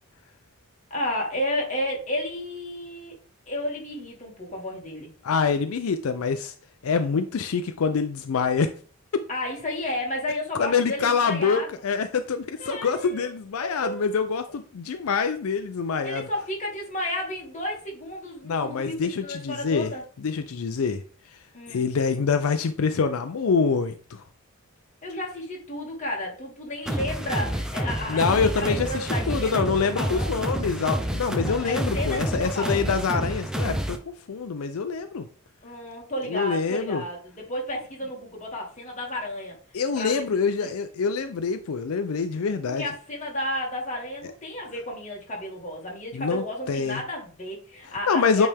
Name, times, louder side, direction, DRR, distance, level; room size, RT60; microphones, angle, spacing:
voice 1, 0.9-3.2 3.5-5.1 9.3-11.7 12.6-13.3 13.6-14.1 16.0-20.0 21.5-21.9 25.0-29.6 29.9-30.4 31.4-32.9 35.6-39.6 40.0-40.2 40.6-40.7 42.6-48.5, left 1 dB, 35° left, -2 dB, 2.0 m, -32 dB
voice 2, 5.2-6.5 6.8-8.7 10.6-16.3 18.4-19.9 20.2-21.0 21.7-24.2 28.1-34.0 34.3-35.3 36.3-37.0 39.7-42.8 46.1-47.0 48.1-48.5, left 5 dB, 80° left, 9 dB, 0.4 m, -25 dB
sound 1, 26.9-34.0, right 1 dB, 5° right, 0.5 m, -29 dB
8.3 x 3.4 x 3.4 m, 0.42 s
head